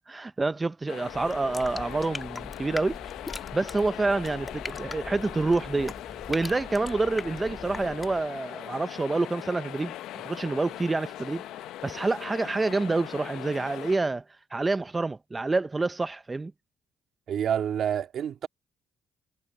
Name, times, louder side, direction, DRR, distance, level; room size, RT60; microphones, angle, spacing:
voice 1, 0.1-3.0 3.5-5.9 6.3-10.0 10.2-11.5 11.8-14.2 14.5-16.5, right 3 dB, 20° right, 0.5 m, -27 dB
sound 1, 0.9-14.0, left 13 dB, 90° left, 0.5 m, -40 dB
sound 2, 1.0-8.3, left 3 dB, 25° left, 1.4 m, -41 dB
voice 2, 17.3-18.5, right 9 dB, 65° right, 2.0 m, -28 dB
cardioid pair, 90°, 0 cm